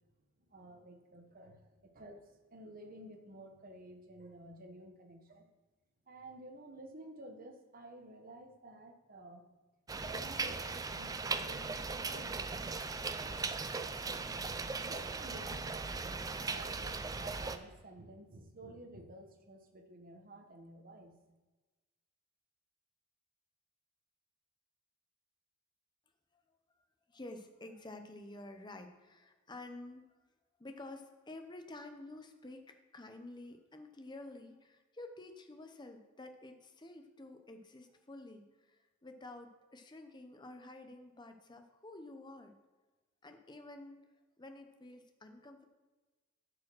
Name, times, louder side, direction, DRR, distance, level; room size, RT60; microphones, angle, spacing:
voice 1, 0.5-5.5 6.1-9.4 10.0-13.5 14.8-21.2, right 1 dB, 45° right, 4 dB, 1.0 m, -52 dB
sound 1, 9.9-17.6, right 4 dB, 20° right, 0.4 m, -38 dB
voice 2, 27.1-30.1 30.6-42.5 43.2-44.0 44.4-45.6, left 2 dB, 20° left, 6 dB, 0.8 m, -50 dB
10.0 x 5.0 x 6.1 m, 1.2 s
head